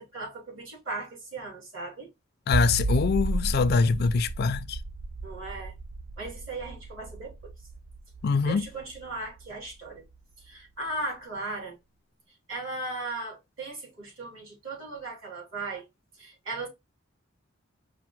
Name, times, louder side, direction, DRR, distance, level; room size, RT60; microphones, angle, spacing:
voice 1, 0.0-2.1 5.2-5.7 6.2-7.5 8.4-10.1 10.4-11.8 12.5-15.8 16.2-16.7, right 2 dB, 85° right, 3.2 m, -37 dB
voice 2, 2.5-4.8 8.2-8.7, left 4 dB, 50° left, 0.4 m, -24 dB
sound 1, 2.5-9.7, right 3 dB, 50° right, 0.4 m, -33 dB
4.9 x 2.0 x 4.4 m
head